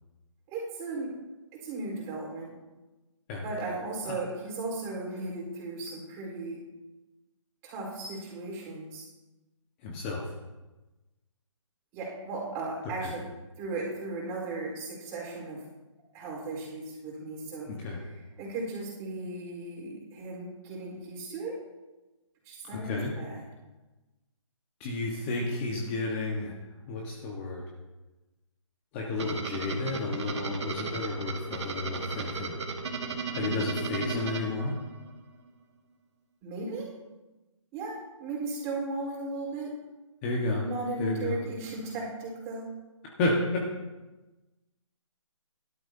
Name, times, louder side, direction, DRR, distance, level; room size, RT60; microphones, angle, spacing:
voice 1, 0.5-1.1 1.6-2.5 3.4-6.6 7.6-9.0 11.9-13.2 13.6-15.6 16.1-21.6 22.4-23.4 33.5-34.1 36.4-36.9 37.7-37.9 38.2-39.7 40.6-42.7, right 2 dB, 20° right, -3 dB, 4.2 m, -36 dB
voice 2, 9.8-10.2 13.0-13.1 17.7-18.0 22.7-23.1 24.8-26.5 26.9-27.6 28.9-32.5 33.3-34.8 40.2-40.6 41.0-41.4 43.2-43.3, left 3 dB, 20° left, -2 dB, 1.4 m, -32 dB
sound 1, 29.2-35.2, right 4 dB, 60° right, 2.1 m, -35 dB
18.0 x 12.5 x 2.8 m, 1.1 s
figure-of-eight pair, 155°, 17 cm